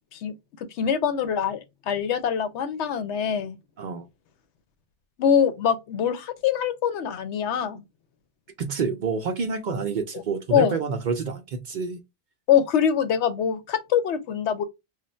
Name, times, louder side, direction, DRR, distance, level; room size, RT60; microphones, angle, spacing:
voice 1, 0.8-3.6 5.2-7.8 10.5-10.8 12.5-14.6, left 8 dB, 85° left, 0.9 m, -24 dB
voice 2, 3.8-4.1 8.6-12.0, right 5 dB, 55° right, 0.6 m, -28 dB
3.3 x 2.1 x 4.2 m
omnidirectional pair, 1.1 m